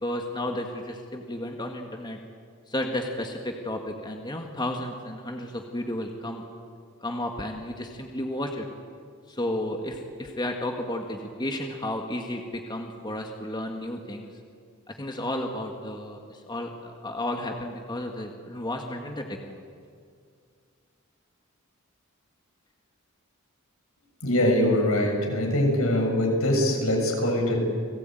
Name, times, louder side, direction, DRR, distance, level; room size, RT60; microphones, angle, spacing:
voice 1, 0.0-2.2 2.7-6.4 7.0-8.7 9.3-14.3 14.9-19.6, left 1 dB, 20° left, 3 dB, 1.9 m, -32 dB
voice 2, 24.2-27.6, left 1 dB, 75° left, 1 dB, 7.2 m, -23 dB
30.0 x 20.0 x 9.3 m, 2.2 s
head